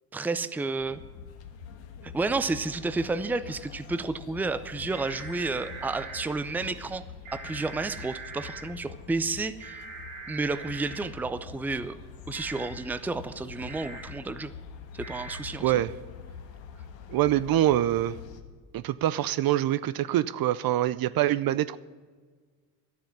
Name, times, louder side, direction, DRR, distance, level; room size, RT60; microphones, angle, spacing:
voice 1, 0.1-1.0 2.0-7.0 7.3-9.8 10.3-12.0 12.3-14.5 14.9-15.8, right 3 dB, 5° right, 12 dB, 0.5 m, -31 dB
sound 1, 0.8-18.4, left 7 dB, 70° left, 1.6 m, -45 dB
sound 2, 4.9-6.3 7.2-8.6 9.6-11.0 12.3-12.7 13.7-14.0 15.0-15.4, right 4 dB, 75° right, 3.3 m, -42 dB
voice 2, 15.6-15.9 17.1-18.2 18.7-21.8, right 13 dB, 50° right, 17 dB, 0.5 m, -25 dB
12.0 x 7.0 x 9.7 m, 1.5 s
supercardioid pair, 85°, 46 cm